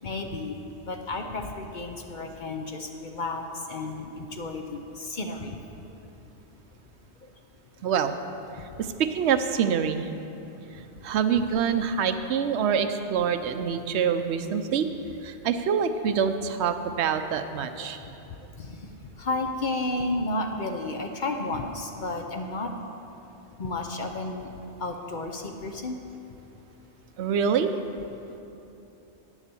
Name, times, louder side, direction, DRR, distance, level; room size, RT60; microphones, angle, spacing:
voice 1, 0.0-5.6 18.6-18.9 19.2-22.7 23.6-24.5 24.8-26.0, left 2 dB, 50° left, 4 dB, 0.7 m, -32 dB
voice 2, 7.8-8.2 9.0-10.1 11.0-14.9 15.2-18.0 27.2-27.7, right 7 dB, 75° right, 9 dB, 0.9 m, -25 dB
9.7 x 7.3 x 6.9 m, 2.9 s
omnidirectional pair, 1.2 m